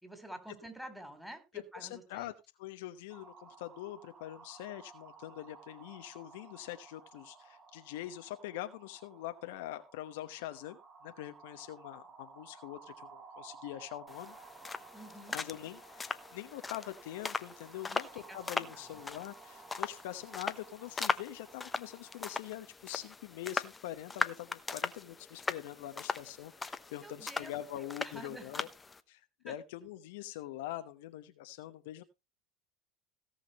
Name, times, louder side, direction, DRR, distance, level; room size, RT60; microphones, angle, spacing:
voice 1, 0.0-2.3 14.9-15.4 17.8-18.9 26.8-27.5 28.0-28.7 29.5-29.6, right 1 dB, ahead, 7 dB, 3.9 m, -49 dB
voice 2, 1.7-2.3 2.6-14.4 15.3-28.7 29.1-32.0, left 14 dB, 75° left, 9 dB, 1.0 m, -44 dB
sound 1, 3.1-22.4, right 5 dB, 40° right, 3.0 m, -56 dB
sound 2, 14.1-29.0, left 4 dB, 20° left, 1.0 m, -40 dB
17.0 x 5.9 x 4.3 m, 0.26 s
hypercardioid pair, 80°, 0 cm